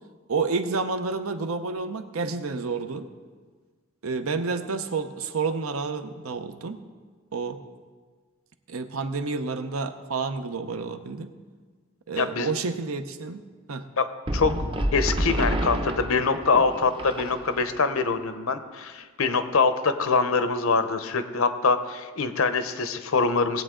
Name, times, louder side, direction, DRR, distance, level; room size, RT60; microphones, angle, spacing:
voice 1, 0.3-3.1 4.0-6.8 7.3-7.6 8.7-11.3 12.1-13.4 13.7-13.8, right 4 dB, 80° right, 8 dB, 0.8 m, -29 dB
voice 2, 12.2-12.5 14.0-14.1 14.3-14.5 14.9-23.6, left 4 dB, 75° left, 10 dB, 0.8 m, -24 dB
sound 1, 14.3-17.8, right 1 dB, 25° right, 0.6 m, -29 dB
19.0 x 8.0 x 3.8 m, 1.5 s
head